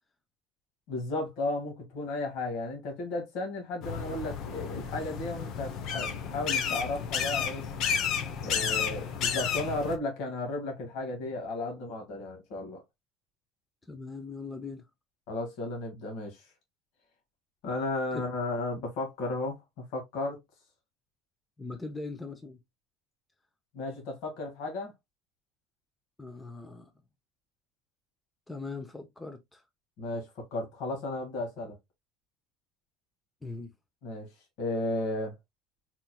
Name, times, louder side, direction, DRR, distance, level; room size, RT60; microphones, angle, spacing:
voice 1, 0.9-7.6 8.4-12.8 15.3-16.4 17.6-20.4 23.7-24.9 30.0-31.8 34.0-34.3 34.6-35.3, left 2 dB, 70° left, 2.1 m, -34 dB
sound 1, 3.8-10.0, left 7 dB, 55° left, 0.8 m, -32 dB
voice 2, 13.8-14.9 18.1-18.2 21.6-22.6 26.2-26.9 28.5-29.7 33.4-33.7, left 3 dB, 10° left, 0.7 m, -40 dB
4.4 x 4.3 x 2.3 m
cardioid pair, 140°, 0 cm